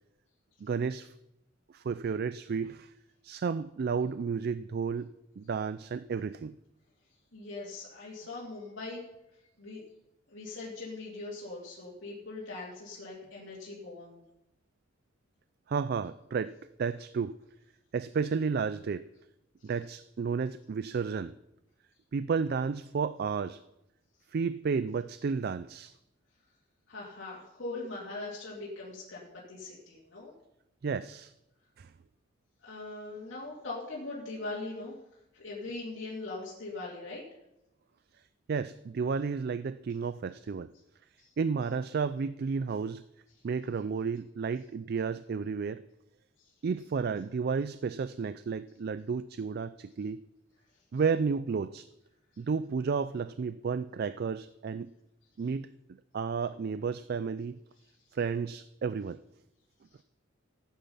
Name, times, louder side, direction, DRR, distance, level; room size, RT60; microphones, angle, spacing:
voice 1, 0.6-1.1 1.7-2.9 3.2-5.1 5.4-6.6 15.7-16.5 16.8-17.4 17.9-19.0 19.6-21.4 22.1-23.6 24.3-25.9 30.8-31.3 31.8-31.9 38.5-40.7 41.4-43.0 43.4-45.8 46.6-50.2 50.9-51.9 52.4-54.9 55.4-55.7 56.1-57.6 58.1-59.2, right 5 dB, 50° right, 14 dB, 0.3 m, -32 dB
voice 2, 7.3-9.0 9.3-9.8 10.3-14.2 19.6-19.7 26.9-30.3 32.6-35.0 35.3-37.2 41.2-41.3 46.4-46.5 52.3-52.4, left 2 dB, 65° left, -6 dB, 2.7 m, -41 dB
14.5 x 9.2 x 5.6 m, 0.89 s
head